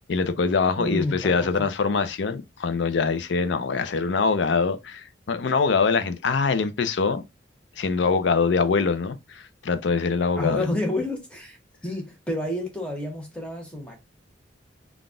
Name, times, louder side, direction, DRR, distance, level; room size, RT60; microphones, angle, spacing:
voice 1, 0.1-7.2 7.8-10.7, left 4 dB, 75° left, 0.5 m, -24 dB
voice 2, 0.8-1.7 10.3-11.6 11.8-14.0, left 1 dB, 5° left, 0.9 m, -29 dB
3.8 x 2.4 x 3.7 m
head